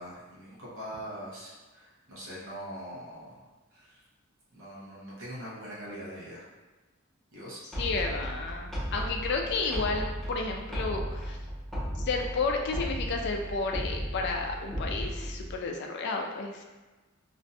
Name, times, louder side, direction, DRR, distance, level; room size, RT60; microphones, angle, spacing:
voice 1, 0.0-4.0 4.5-6.5 7.3-7.6, equal, 65° right, -7 dB, 0.8 m, -42 dB
sound 1, 7.7-15.6, equal, ahead, 0.6 m, -35 dB
voice 2, 7.8-11.4 12.0-16.6, left 3 dB, 55° left, 2 dB, 0.3 m, -32 dB
2.5 x 2.1 x 2.6 m, 1.2 s
head